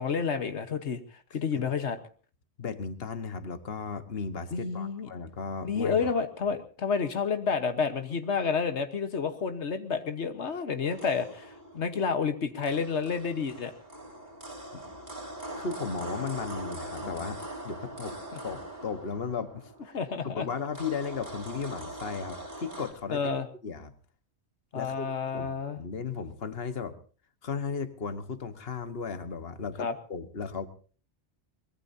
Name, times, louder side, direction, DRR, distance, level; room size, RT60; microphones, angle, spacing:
voice 1, 0.0-2.0 4.5-5.1 5.6-13.7 18.3-18.4 19.9-20.5 23.1-23.5 24.7-25.8 29.8-29.9, left 5 dB, 90° left, 8 dB, 1.6 m, -30 dB
voice 2, 2.6-6.1 14.7-14.9 15.6-18.2 18.4-20.0 20.3-23.2 23.6-23.9 24.7-25.5 25.8-27.0 27.4-30.7, left 5 dB, 60° left, 10 dB, 1.6 m, -35 dB
sound 1, 10.8-22.9, right 1 dB, 45° right, 4.1 m, -42 dB
24.0 x 20.5 x 2.8 m, 0.39 s
omnidirectional pair, 1.1 m